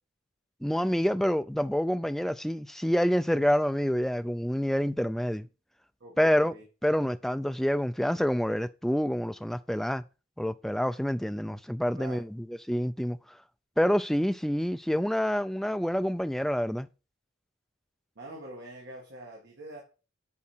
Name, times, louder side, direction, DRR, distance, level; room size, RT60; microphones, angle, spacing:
voice 1, 0.6-5.5 6.2-6.5 6.8-10.0 10.4-13.2 13.8-16.9, equal, ahead, 0.3 m, -27 dB
voice 2, 6.0-6.6 11.9-12.2 18.2-19.8, right 1 dB, 55° right, 1.9 m, -44 dB
8.5 x 5.0 x 4.4 m
head